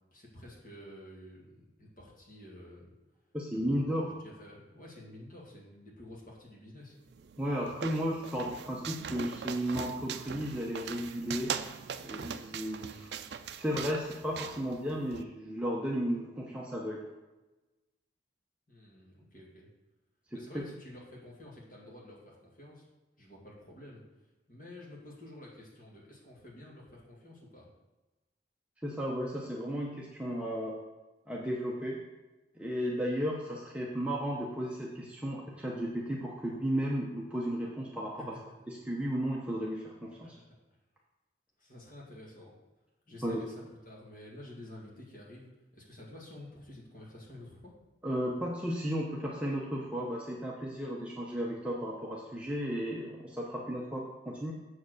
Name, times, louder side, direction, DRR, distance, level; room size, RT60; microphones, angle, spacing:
voice 1, 0.1-2.9 3.5-7.0 18.7-19.7 20.3-22.9 23.2-24.0 24.5-27.7 38.2-38.4 40.1-40.5 41.6-42.5 43.1-47.7, left 1 dB, 45° left, -4 dB, 2.1 m, -50 dB
voice 2, 3.3-4.1 7.4-11.5 12.0-13.1 13.6-17.0 20.3-20.6 28.8-30.8 31.3-32.0 32.6-38.4 38.7-40.4 43.2-43.4 48.0-54.5, equal, 5° right, -3 dB, 0.7 m, -34 dB
sound 1, 7.1-15.2, right 7 dB, 65° right, 0.4 m, -41 dB
7.2 x 4.7 x 6.3 m, 1.1 s
head